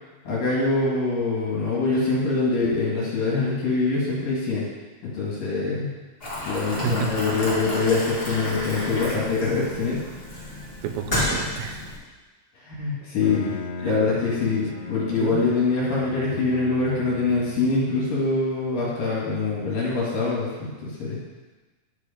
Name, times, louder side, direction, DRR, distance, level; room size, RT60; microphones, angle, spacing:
voice 1, 0.3-4.7 5.1-5.9 6.4-10.0 12.6-13.5 13.8-21.2, left 3 dB, 65° left, -7 dB, 3.5 m, -24 dB
Boiling, 6.2-12.0, left 1 dB, 25° left, 1.4 m, -31 dB
voice 2, 6.7-7.5 10.8-11.8 13.8-14.0 15.2-15.5 16.3-16.4, right 7 dB, 80° right, 6 dB, 2.2 m, -31 dB
Bowed string instrument, 13.0-18.1, left 4 dB, 85° left, 3.1 m, -37 dB
11.0 x 5.0 x 5.1 m, 1.3 s
omnidirectional pair, 4.5 m